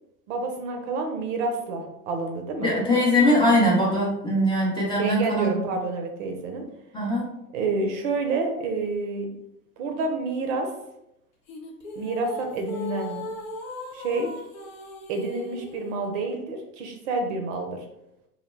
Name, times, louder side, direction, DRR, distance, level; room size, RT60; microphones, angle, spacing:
voice 1, 0.3-2.7 5.0-6.6 7.5-9.3 9.8-10.7 12.0-13.3 13.9-14.3 15.1-17.8, right 3 dB, 50° right, 3 dB, 0.6 m, -28 dB
voice 2, 2.6-5.5 6.9-7.3, left 1 dB, 10° left, -6 dB, 0.5 m, -21 dB
sound 1, 11.5-16.0, left 1 dB, 60° left, 0.8 m, -38 dB
2.3 x 2.1 x 3.1 m, 0.83 s
figure-of-eight pair, 90°, 47 cm